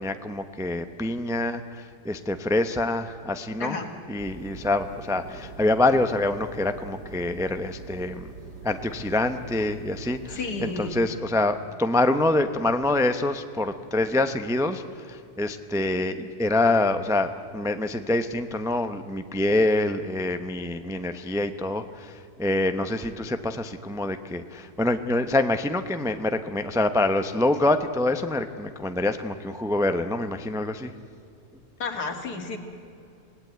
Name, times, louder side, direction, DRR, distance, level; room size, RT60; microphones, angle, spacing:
voice 1, 0.0-3.8 4.1-8.3 8.6-30.9, left 2 dB, 5° right, 8 dB, 0.5 m, -26 dB
sound 1, 4.2-10.9, right 4 dB, 80° right, 3.8 m, -43 dB
voice 2, 10.3-11.0 31.8-32.6, left 3 dB, 70° left, 5 dB, 2.7 m, -31 dB
26.5 x 18.0 x 9.3 m, 2.6 s
omnidirectional pair, 1.7 m